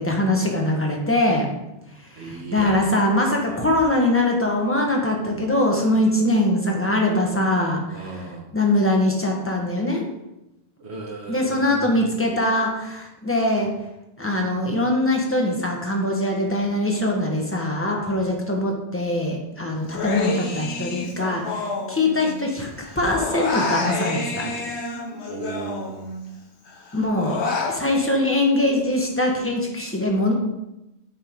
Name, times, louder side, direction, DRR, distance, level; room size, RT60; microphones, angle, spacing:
voice 1, 0.0-1.5 2.0-10.0 11.3-13.7 14.2-22.7 22.9-24.5 26.9-27.4 27.7-30.3, left 1 dB, 10° left, 0 dB, 1.4 m, -22 dB
voice 2, 2.2-2.8 3.4-3.6 7.9-8.5 10.8-11.8 18.1-18.2 25.3-26.0, right 4 dB, 80° right, 0 dB, 1.8 m, -35 dB
Human voice, 19.9-22.5 22.8-26.3 26.7-27.8, left 3 dB, 85° left, 1.3 m, -29 dB
9.5 x 5.4 x 3.8 m, 0.93 s
omnidirectional pair, 1.1 m